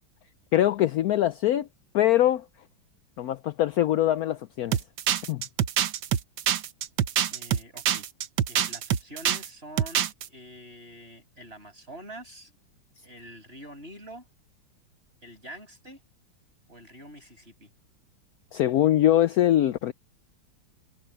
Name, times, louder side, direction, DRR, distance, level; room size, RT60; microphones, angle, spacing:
voice 1, 0.5-1.7 1.9-2.4 3.2-4.8 5.3-5.4 18.5-19.9, left 13 dB, 80° left, 0.8 m, -23 dB
sound 1, 4.7-9.5 9.8-10.3, right 10 dB, 70° right, 1.6 m, -25 dB
voice 2, 7.3-8.1 8.5-12.5 13.0-14.2 15.2-16.0 16.7-17.7, right 1 dB, 30° right, 7.6 m, -45 dB
omnidirectional pair, 2.2 m